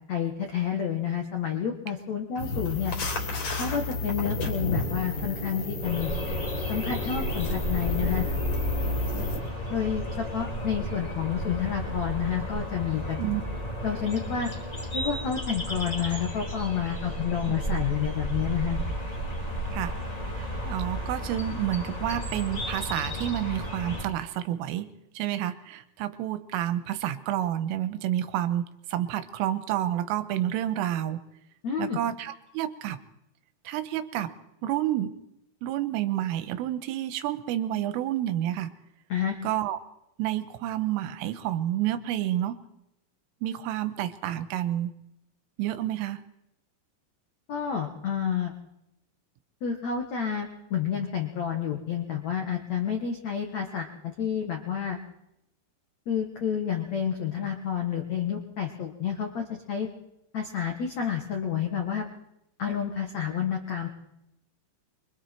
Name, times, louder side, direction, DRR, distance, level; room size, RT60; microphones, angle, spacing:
voice 1, 0.1-2.9 3.5-6.1 6.7-8.2 9.7-13.2 13.8-14.5 14.9-18.8 31.6-32.0 39.1-39.4 47.5-48.5 49.6-55.0 56.1-59.9 60.3-62.0 62.6-63.9, left 8 dB, 85° left, 3 dB, 1.5 m, -29 dB
sound 1, 2.4-9.4, left 2 dB, 40° left, 3.6 m, -31 dB
sound 2, 5.8-24.0, equal, 15° left, 1.2 m, -33 dB
voice 2, 20.3-24.9 25.2-31.2 31.8-33.0 33.7-34.3 34.6-35.1 35.6-38.7 39.4-39.8 40.2-42.6 43.4-44.9 45.6-46.2, right 12 dB, 80° right, 11 dB, 3.5 m, -29 dB
25.5 x 24.0 x 4.5 m, 0.84 s
omnidirectional pair, 6.0 m